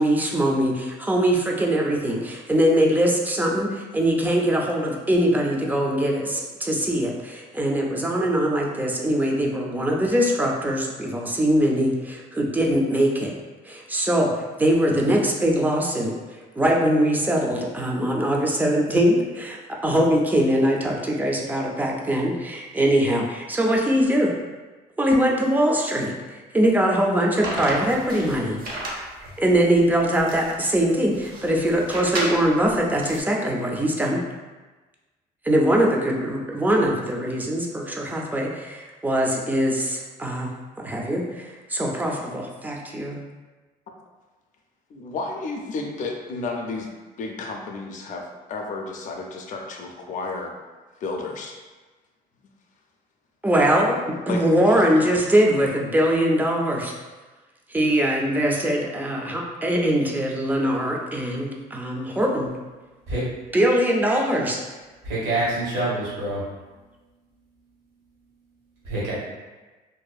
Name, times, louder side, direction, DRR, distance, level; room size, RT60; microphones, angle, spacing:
voice 1, 0.0-13.3 13.7-14.3 14.6-24.3 25.0-28.6 29.4-34.2 35.4-40.5 40.8-43.2 53.4-54.0 54.3-56.9 57.7-62.5 63.5-64.6, right 1 dB, 10° right, -1 dB, 0.4 m, -22 dB
sound 1, 27.4-33.2, right 1 dB, 60° right, 0.6 m, -33 dB
voice 2, 44.9-46.9 47.2-50.5 51.0-51.5 54.3-54.4, left 3 dB, 50° left, 1 dB, 0.4 m, -32 dB
voice 3, 65.0-66.4 68.9-69.1, right 2 dB, 80° right, -9 dB, 1.2 m, -26 dB
2.6 x 2.3 x 2.2 m, 1.2 s
cardioid pair, 110°, 17 cm